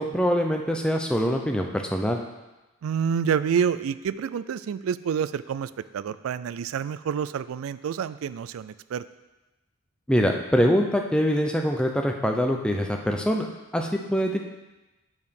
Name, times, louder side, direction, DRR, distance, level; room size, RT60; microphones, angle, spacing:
voice 1, 0.0-2.2 10.1-13.5 13.7-14.4, equal, 5° left, 2 dB, 0.5 m, -24 dB
voice 2, 2.8-9.0, right 7 dB, 75° right, 15 dB, 0.3 m, -28 dB
8.1 x 4.8 x 5.3 m, 1.1 s
head